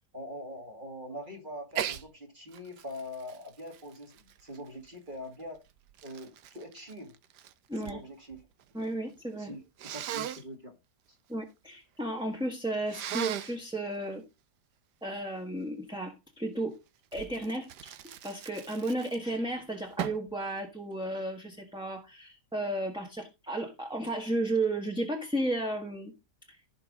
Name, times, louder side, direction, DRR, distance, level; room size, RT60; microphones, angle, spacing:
voice 1, 0.1-5.6 6.0-7.1 7.8-8.5 9.3-10.8 11.1-11.2, equal, 30° right, 2.3 m, -43 dB
Sneeze, 1.7-2.0 2.5-4.9 5.6-8.0 8.3-8.9 9.8-10.4 12.9-13.6 17.1-19.4 20.0-20.3, right 10 dB, 80° right, 1.5 m, -38 dB
voice 2, 8.7-9.5 11.3-14.2 15.0-16.8 17.1-17.7 18.2-26.1, right 1 dB, 5° right, 1.3 m, -33 dB
15.5 x 5.4 x 3.8 m
omnidirectional pair, 1.8 m